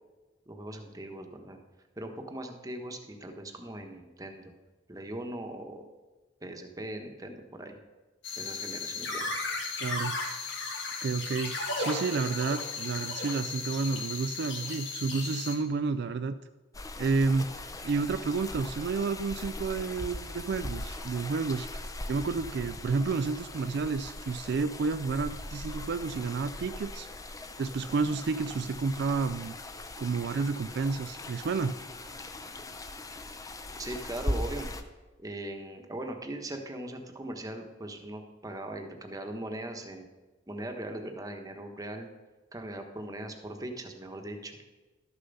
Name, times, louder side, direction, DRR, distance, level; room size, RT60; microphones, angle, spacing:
voice 1, 0.5-1.6 2.0-4.5 4.9-5.8 6.4-7.8 8.4-9.3 33.8-34.7 35.2-40.1 40.5-42.1 42.5-44.5, right 1 dB, 20° right, 4 dB, 1.1 m, -40 dB
sound 1, 8.2-15.5, left 3 dB, 70° left, 2.1 m, -35 dB
voice 2, 9.8-10.2 11.0-16.3 17.0-17.5 17.8-27.1 27.6-29.5 30.0-31.7 32.0-32.2, right 4 dB, 60° right, 10 dB, 0.4 m, -30 dB
sound 2, 16.7-34.8, left 2 dB, 20° left, 0.6 m, -40 dB
12.5 x 6.8 x 5.4 m, 1.2 s
head